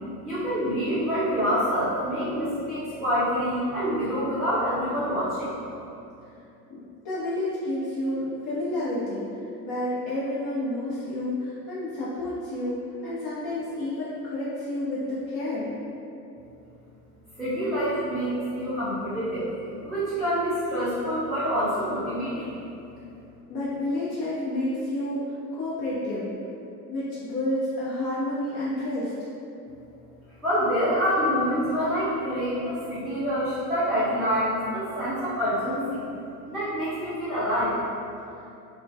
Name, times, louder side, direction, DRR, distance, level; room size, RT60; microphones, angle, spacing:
voice 1, 0.2-5.6 17.4-19.5 19.8-22.6 22.9-23.0 30.4-36.0 36.5-37.8, equal, ahead, -13 dB, 0.6 m, -26 dB
voice 2, 6.7-9.2 9.6-15.8 23.5-26.3 26.9-29.1, left 1 dB, 45° left, -10 dB, 0.7 m, -30 dB
2.9 x 2.2 x 2.7 m, 2.7 s
hypercardioid pair, 75°, 48 cm